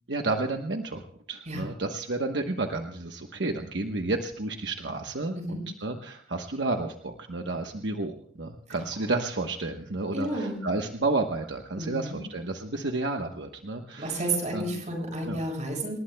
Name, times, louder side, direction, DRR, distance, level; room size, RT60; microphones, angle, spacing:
voice 1, 0.1-1.0 1.3-14.2 14.5-14.8 15.3-15.4, right 2 dB, 75° right, 3 dB, 1.1 m, -31 dB
voice 2, 10.1-10.6 11.8-12.2 14.0-16.0, right 1 dB, 45° right, 1 dB, 7.1 m, -31 dB
28.0 x 19.5 x 2.3 m, 0.62 s
head